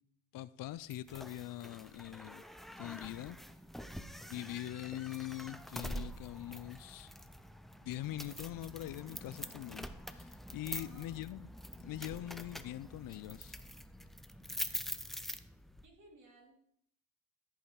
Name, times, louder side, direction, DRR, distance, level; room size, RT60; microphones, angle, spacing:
voice 1, 0.3-2.4 2.8-3.4 4.3-7.1 7.8-11.5 11.8-13.6, left 14 dB, 65° left, 0.5 m, -43 dB
sound 1, 0.9-15.9, equal, ahead, 0.5 m, -46 dB
voice 2, 10.7-11.2 15.8-16.5, right 2 dB, 50° right, 3.8 m, -60 dB
14.0 x 5.7 x 4.9 m
cardioid pair, 110°, 37 cm